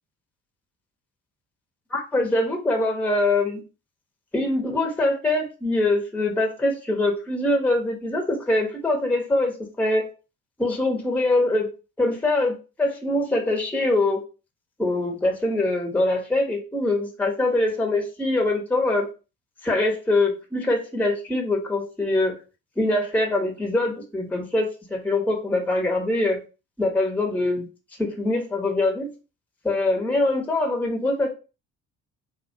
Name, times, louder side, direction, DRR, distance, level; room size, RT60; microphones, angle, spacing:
voice 1, 1.9-3.6 4.3-10.1 10.6-11.7 12.0-14.2 14.8-19.1 19.6-22.4 22.8-26.4 26.8-27.7 28.0-29.1 29.6-31.3, left 2 dB, 5° left, 3 dB, 0.6 m, -23 dB
2.3 x 2.2 x 2.6 m, 0.32 s
hypercardioid pair, 55°, 39 cm